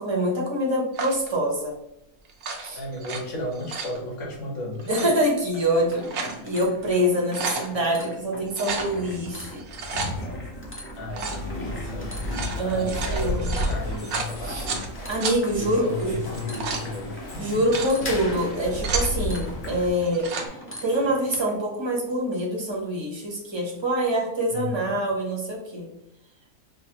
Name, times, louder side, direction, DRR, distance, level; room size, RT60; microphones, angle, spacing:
voice 1, 0.0-1.7 2.6-2.8 4.9-9.6 12.5-13.5 14.4-14.7 15.1-16.2 17.4-20.3 20.8-25.9, right 1 dB, 25° right, -2 dB, 0.8 m, -25 dB
sound 1, 0.9-1.3 2.3-3.2 3.5-4.0 4.8-5.1 5.8-6.4 6.8-6.9 7.1-7.7 8.5-8.9 9.6-10.1 11.1-11.4 12.1-14.9 15.2-15.4 16.2-16.9 17.5-17.9 18.5-19.1 20.0-20.5, right 4 dB, 65° right, 0.9 m, -32 dB
voice 2, 2.7-5.1 11.0-12.1 12.6-14.9 15.5-17.5 24.5-24.9, left 2 dB, 65° left, -2 dB, 1.5 m, -34 dB
sound 2, 5.8-21.5, right 1 dB, 15° left, 0.4 m, -41 dB
sound 3, 8.6-19.9, left 1 dB, 45° left, 1.0 m, -33 dB
5.4 x 2.1 x 2.8 m, 0.85 s
omnidirectional pair, 1.4 m